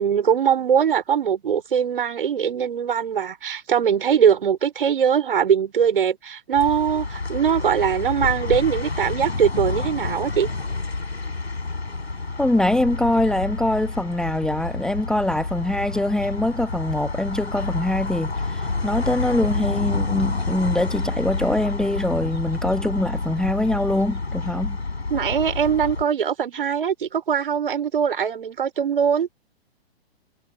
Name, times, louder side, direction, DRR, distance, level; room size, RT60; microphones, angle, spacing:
voice 1, 0.0-10.5 25.1-29.3, right 8 dB, 55° right, 5.0 m, -21 dB
sound 1, 6.5-26.0, left 3 dB, 75° left, 6.3 m, -29 dB
voice 2, 12.4-24.8, left 1 dB, ahead, 1.2 m, -23 dB
figure-of-eight pair, 120°, 32 cm